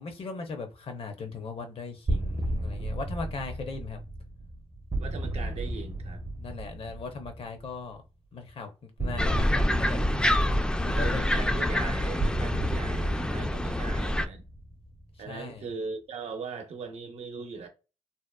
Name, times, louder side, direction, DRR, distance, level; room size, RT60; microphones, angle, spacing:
voice 1, 0.0-4.0 6.4-8.0 8.3-8.7 9.0-10.0 10.8-11.4 15.3-15.6, left 4 dB, 60° left, 0.7 m, -38 dB
sound 1, 2.1-7.8 9.0-15.3, right 1 dB, 35° right, 0.6 m, -34 dB
voice 2, 5.0-6.2 10.9-14.4 15.2-17.7, right 4 dB, 80° right, 0.6 m, -39 dB
sound 2, 9.2-14.3, left 1 dB, 10° left, 0.3 m, -26 dB
2.8 x 2.0 x 2.2 m
cardioid pair, 55°, 11 cm